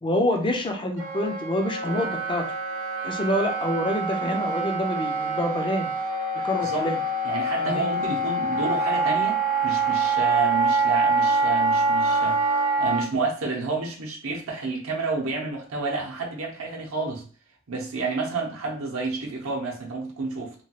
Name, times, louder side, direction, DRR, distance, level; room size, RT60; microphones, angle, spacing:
voice 1, 0.0-2.5 3.0-5.9 6.4-7.0 7.6-7.9, left 1 dB, 25° left, 0.4 m, -26 dB
Wind instrument woodwind instrument, 1.0-13.0, right 3 dB, 35° right, 0.5 m, -25 dB
voice 2, 7.2-17.2 17.7-20.5, right 3 dB, 75° right, 0.7 m, -30 dB
3.0 x 2.3 x 2.8 m
head